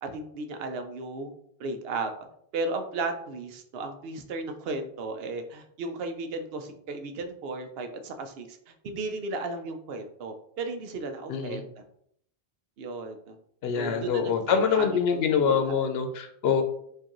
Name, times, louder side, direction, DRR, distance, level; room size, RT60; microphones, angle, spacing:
voice 1, 0.0-1.3 1.6-2.1 2.5-11.7 12.8-13.4 13.7-15.9, right 3 dB, 75° right, 6 dB, 0.8 m, -35 dB
voice 2, 11.3-11.6 13.6-16.6, left 6 dB, 80° left, 6 dB, 0.8 m, -25 dB
4.6 x 2.6 x 3.0 m, 0.69 s
omnidirectional pair, 1.0 m